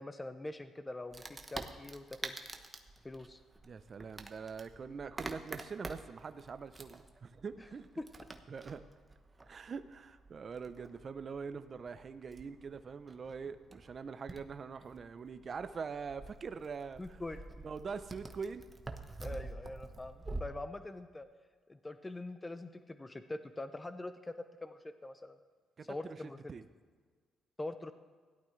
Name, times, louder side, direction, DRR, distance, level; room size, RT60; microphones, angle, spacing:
voice 1, 0.0-2.4 3.0-3.4 8.0-8.1 17.0-17.5 19.2-21.3 21.7-24.3 24.6-25.4 25.9-26.4 27.6-27.9, left 2 dB, 20° left, 10 dB, 0.6 m, -43 dB
Wood, 1.1-20.4, right 2 dB, 20° right, 1.0 m, -48 dB
voice 2, 3.6-7.9 8.5-8.8 9.5-17.2 17.6-18.7 25.8-26.6, right 5 dB, 45° right, 11 dB, 0.6 m, -43 dB
17.0 x 11.5 x 3.2 m, 1.5 s
cardioid pair, 90°, 0 cm